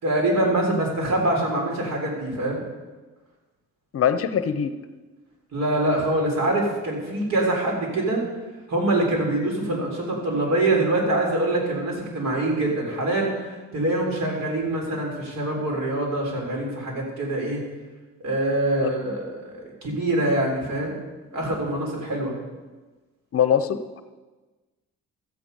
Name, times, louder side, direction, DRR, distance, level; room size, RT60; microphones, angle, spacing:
voice 1, 0.0-2.6 5.5-8.2 8.7-17.6 18.2-20.9 21.3-22.4, right 1 dB, 60° right, -1 dB, 3.7 m, -24 dB
voice 2, 3.9-4.7 18.8-18.9 23.3-24.0, left 8 dB, 50° left, 11 dB, 0.7 m, -22 dB
13.0 x 8.6 x 5.3 m, 1.3 s
cardioid pair, 90°, 30 cm